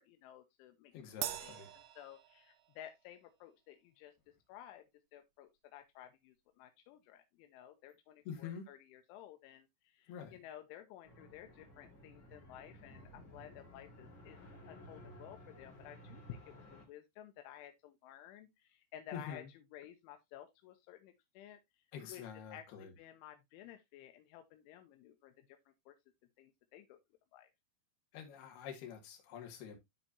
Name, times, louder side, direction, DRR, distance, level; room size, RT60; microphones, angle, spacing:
voice 1, 0.0-0.9 1.4-4.1 4.5-14.4 14.7-21.6 22.1-22.2 22.5-25.6 25.9-26.0 26.4-27.0 27.3-27.5, left 11 dB, 85° left, 3.2 m, -54 dB
voice 2, 0.9-1.7 8.2-8.7 10.1-10.4 19.1-19.5 21.9-22.9 28.1-29.8, left 7 dB, 60° left, 3.5 m, -46 dB
Crash cymbal, 1.2-2.9, right 12 dB, 80° right, 2.8 m, -44 dB
sound 1, 11.0-16.8, equal, 40° left, 1.8 m, -56 dB
12.5 x 4.6 x 2.7 m
omnidirectional pair, 5.6 m